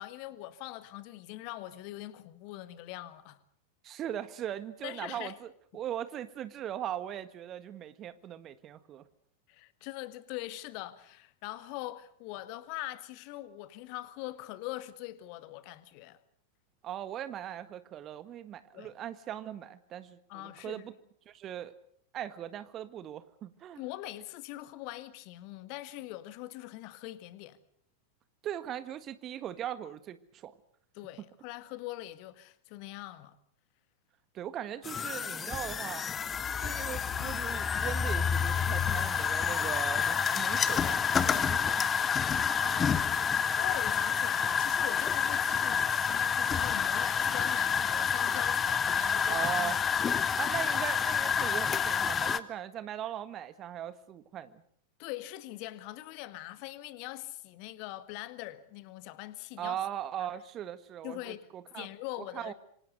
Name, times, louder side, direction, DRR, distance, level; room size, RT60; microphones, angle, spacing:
voice 1, 0.0-3.4 4.8-5.4 9.5-16.2 18.7-18.9 20.3-20.9 23.8-27.6 30.9-33.4 42.2-50.3 55.0-59.8 60.2-60.3 61.0-61.5 61.8-62.5, left 16 dB, 45° left, 1.8 m, -42 dB
voice 2, 3.8-9.0 16.8-20.9 21.3-21.7 22.1-23.8 28.4-30.5 34.3-36.1 36.6-41.8 49.3-49.8 50.4-54.6 59.6-61.9 62.2-62.5, right 10 dB, 30° right, 1.6 m, -39 dB
sound 1, 34.8-52.4, left 7 dB, 20° left, 1.2 m, -29 dB
27.0 x 25.5 x 6.6 m
figure-of-eight pair, 90°, 0 cm